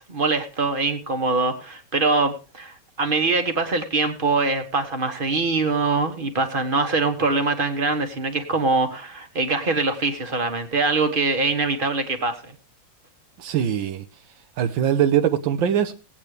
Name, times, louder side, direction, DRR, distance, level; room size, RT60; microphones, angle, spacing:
voice 1, 0.0-12.5, right 3 dB, 30° right, 1.4 m, -23 dB
voice 2, 13.4-14.0 14.6-15.9, right 9 dB, 85° right, 1.6 m, -22 dB
18.5 x 8.7 x 3.3 m
omnidirectional pair, 2.0 m